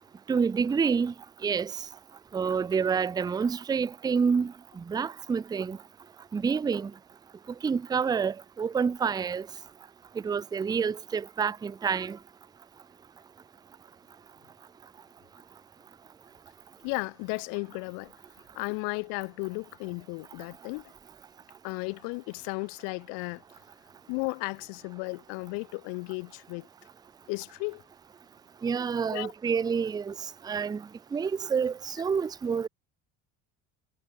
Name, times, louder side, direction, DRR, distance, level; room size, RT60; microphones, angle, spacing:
voice 1, 0.3-1.1 1.4-1.7 2.3-5.8 6.3-6.9 7.6-9.5 10.2-12.2 28.6-30.1 30.4-30.8 31.1-32.7, right 6 dB, 10° right, 0.5 m, -28 dB
voice 2, 16.8-18.1 18.5-20.9 21.6-23.4 24.1-26.7 27.3-27.8 29.1-29.3, left 40 dB or more, 85° left, 1.0 m, -34 dB
cardioid pair, 145°, 34 cm